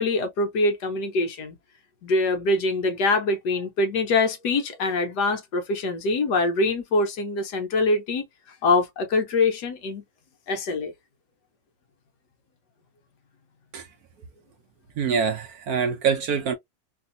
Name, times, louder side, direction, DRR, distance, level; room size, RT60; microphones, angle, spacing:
voice 1, 0.0-1.6 2.0-8.3 8.6-10.0 10.5-10.9, left 3 dB, 65° left, 1.5 m, -24 dB
voice 2, 15.0-16.5, right 6 dB, 70° right, 1.0 m, -25 dB
3.4 x 2.5 x 2.6 m
omnidirectional pair, 2.0 m